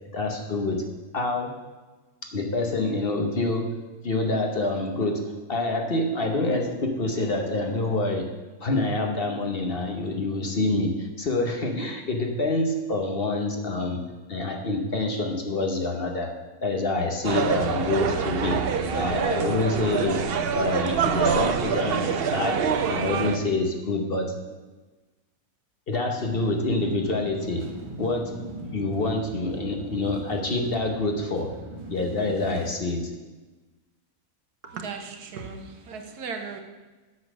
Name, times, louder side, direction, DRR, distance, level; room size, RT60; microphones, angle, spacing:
voice 1, 0.1-0.8 1.1-1.7 2.2-3.8 4.0-8.3 8.6-14.0 14.3-16.4 16.6-18.6 18.9-20.2 20.5-22.6 22.9-24.4 25.9-27.7 28.0-31.5 31.9-33.1, left 2 dB, 45° left, 3 dB, 1.1 m, -27 dB
sound 1, 17.2-23.4, right 6 dB, 55° right, 0.7 m, -25 dB
sound 2, 26.2-32.7, right 2 dB, 25° right, 0.9 m, -40 dB
voice 2, 34.6-36.6, right 5 dB, 85° right, 4 dB, 1.7 m, -36 dB
8.4 x 7.1 x 6.2 m, 1.2 s
omnidirectional pair, 1.6 m